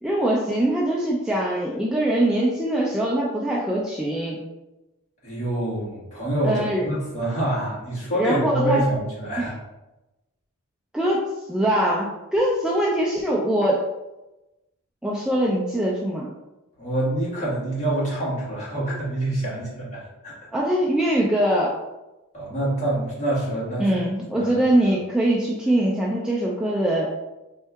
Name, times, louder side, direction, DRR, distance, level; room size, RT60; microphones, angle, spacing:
voice 1, 0.0-4.4 6.4-6.9 8.1-8.8 9.4-9.5 10.9-11.2 11.5-13.8 15.0-16.3 20.5-21.8 23.8-27.1, right 1 dB, 5° right, -4 dB, 0.3 m, -22 dB
voice 2, 5.2-9.5 16.8-20.3 22.3-24.0 24.3-24.5, right 1 dB, 35° left, -7 dB, 1.3 m, -26 dB
4.3 x 2.7 x 2.3 m, 1.0 s
head